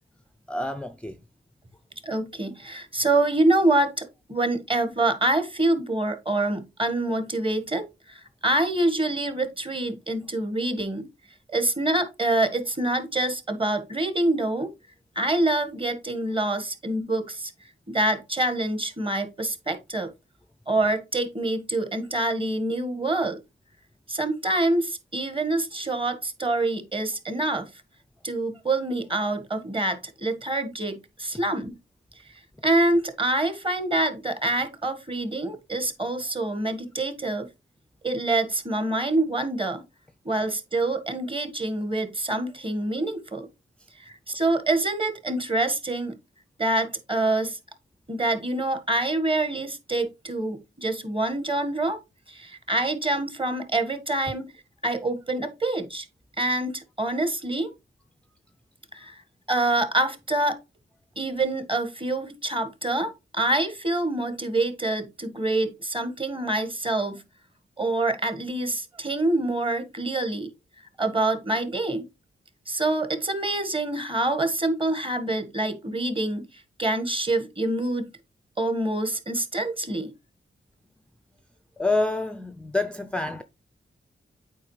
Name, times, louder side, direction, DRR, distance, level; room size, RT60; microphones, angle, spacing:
voice 1, 0.5-1.2 81.8-83.4, left 2 dB, 5° left, 0.5 m, -27 dB
voice 2, 2.0-11.1 11.5-14.7 15.1-17.5 17.9-20.1 20.7-23.4 24.1-27.7 28.2-31.7 32.6-37.5 38.0-39.8 40.2-43.5 44.0-46.2 46.6-47.6 48.1-52.0 52.3-54.5 54.8-56.1 56.4-57.7 58.9-59.2 59.5-60.6 61.2-67.2 67.8-70.5 71.0-72.1 72.7-76.5 76.8-78.1 78.6-80.1, right 2 dB, 25° right, 1.5 m, -26 dB
8.4 x 4.7 x 3.2 m
cardioid pair, 75°, 21 cm